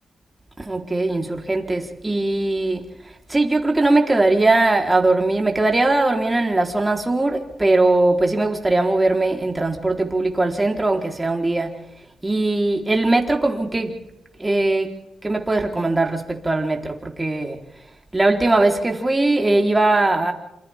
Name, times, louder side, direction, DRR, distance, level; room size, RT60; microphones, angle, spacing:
voice 1, 0.6-2.9 3.3-11.8 12.2-14.0 14.4-17.6 18.1-20.3, right 2 dB, 20° right, 4.0 m, -20 dB
28.0 x 27.5 x 3.7 m
cardioid pair, 75°, 0 cm